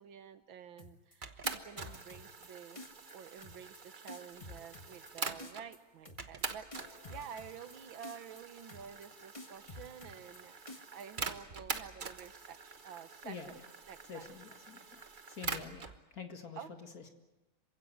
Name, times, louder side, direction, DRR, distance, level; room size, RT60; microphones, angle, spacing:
voice 1, 0.0-13.6 13.9-14.3 16.6-16.7, right 8 dB, 70° right, 11 dB, 1.7 m, -50 dB
sound 1, 0.8-1.1 1.4-2.5 2.8-3.1 3.4-3.8 4.1-5.1 5.4-5.8 6.0-6.4 6.7-7.7 8.0-8.4 8.7-9.1 9.3-10.4 10.7-11.0, left 2 dB, 15° left, 1.4 m, -49 dB
sound 2, 1.2-5.7 6.2-16.0, right 4 dB, 35° right, 0.9 m, -44 dB
voice 2, 13.2-13.7 14.1-17.1, left 6 dB, 45° left, 5 dB, 2.2 m, -48 dB
27.0 x 16.0 x 9.5 m, 1.1 s
omnidirectional pair, 2.3 m